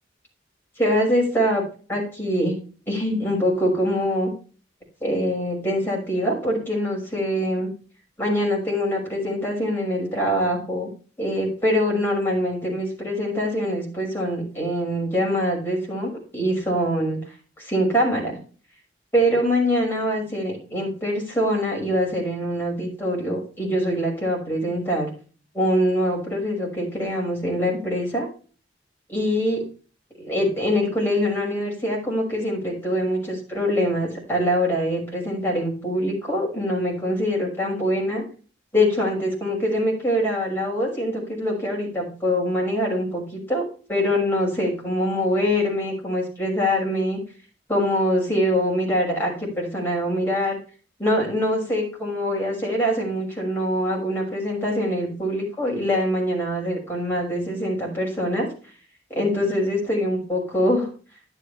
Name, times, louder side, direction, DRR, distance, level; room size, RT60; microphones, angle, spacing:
voice 1, 0.8-1.6 1.9-2.5 2.9-4.3 5.0-7.7 8.2-10.9 11.2-17.2 17.6-18.4 19.1-25.1 25.5-28.3 29.1-29.6 30.2-38.2 38.7-43.6 43.9-47.2 47.7-50.6 51.0-58.5 59.1-60.9, equal, 10° left, -2 dB, 6.1 m, -24 dB
12.0 x 9.9 x 3.4 m, 0.38 s
head